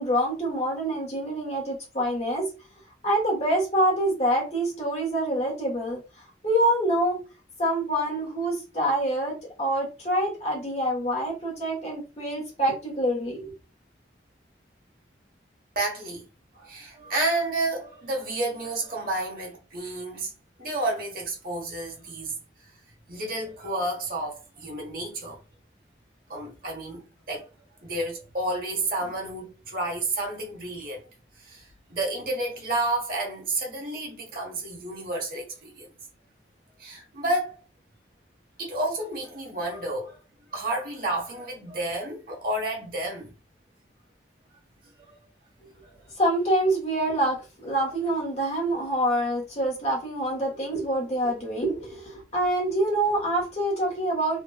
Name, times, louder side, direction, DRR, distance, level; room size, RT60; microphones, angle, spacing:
voice 1, 0.0-2.5 3.0-6.0 6.4-7.2 7.6-13.5 46.2-54.4, right 1 dB, 35° left, 1.2 m, -26 dB
voice 2, 15.7-16.3 16.6-20.3 20.6-22.3 23.1-25.4 26.3-27.5 27.8-31.0 31.4-35.9 36.8-37.6 38.6-40.2 40.5-43.3 45.1-45.2 48.8-48.9, right 2 dB, 50° right, 1.1 m, -30 dB
2.9 x 2.5 x 2.3 m
head